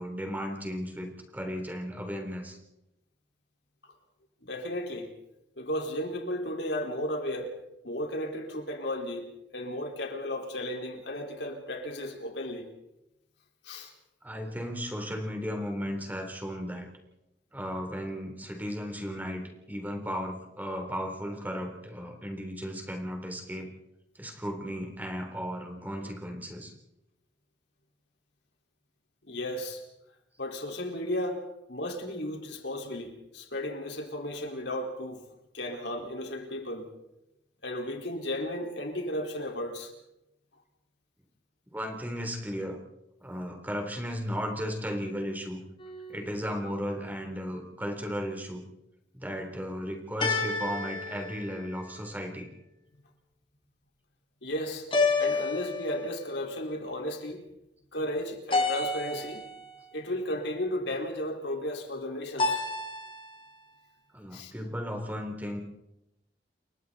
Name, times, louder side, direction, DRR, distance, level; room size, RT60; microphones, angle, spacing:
voice 1, 0.0-2.6 14.2-16.9 17.5-23.7 24.2-26.7 41.7-42.8 43.2-45.6 46.1-48.6 49.1-52.5 64.1-65.6, equal, 10° right, 3 dB, 3.6 m, -35 dB
voice 2, 4.4-5.1 5.6-7.5 7.8-12.7 13.6-13.9 29.2-29.8 30.4-31.4 31.7-35.3 35.5-36.9 37.6-39.9 54.4-54.9 55.2-57.4 57.9-59.4 59.9-62.6 64.3-64.5, left 1 dB, 70° left, 1 dB, 4.6 m, -34 dB
sound 1, 45.8-46.5 50.2-52.2 54.9-56.3 58.5-59.7 62.4-63.4, left 3 dB, 30° left, 4.1 m, -30 dB
29.5 x 23.5 x 4.2 m, 0.90 s
head